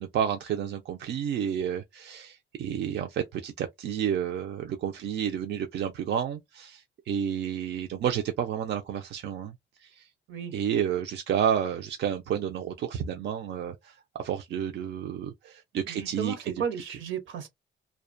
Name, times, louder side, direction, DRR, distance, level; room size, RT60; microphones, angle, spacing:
voice 1, 0.0-9.5 9.8-10.1 10.5-16.5, right 9 dB, 60° right, 0.4 m, -30 dB
voice 2, 15.9-17.5, right 7 dB, 80° right, 0.8 m, -34 dB
2.4 x 2.2 x 2.4 m
cardioid pair, 90°, 20 cm